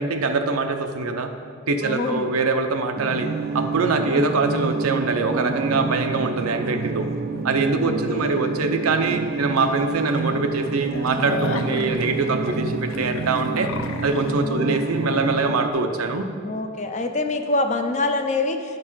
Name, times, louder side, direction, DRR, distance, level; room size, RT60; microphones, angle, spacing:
voice 1, 0.0-1.3 1.7-3.3 3.5-7.1 7.4-13.7 14.0-16.3, right 3 dB, 80° right, 6 dB, 0.7 m, -23 dB
voice 2, 1.8-2.3 4.0-4.3 7.8-8.4 11.6-11.9 14.4-14.7 16.4-18.8, left 2 dB, 35° left, 6 dB, 0.5 m, -26 dB
sound 1, 3.0-15.7, right 3 dB, 45° right, 0.4 m, -29 dB
sound 2, 9.0-9.2 9.6-9.7 10.1-10.2 10.6-14.3, left 3 dB, 70° left, 0.6 m, -34 dB
10.5 x 5.3 x 5.6 m, 2.3 s
head